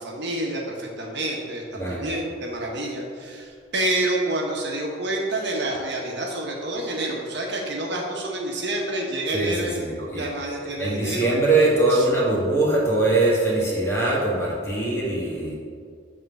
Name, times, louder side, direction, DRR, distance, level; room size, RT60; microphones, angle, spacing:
voice 1, 0.0-11.3 11.9-12.1, right 1 dB, 65° right, -1 dB, 1.2 m, -28 dB
voice 2, 1.8-2.1 9.3-10.3 10.8-15.5, right 2 dB, 15° left, -5 dB, 1.9 m, -22 dB
7.9 x 3.7 x 6.5 m, 2.1 s
head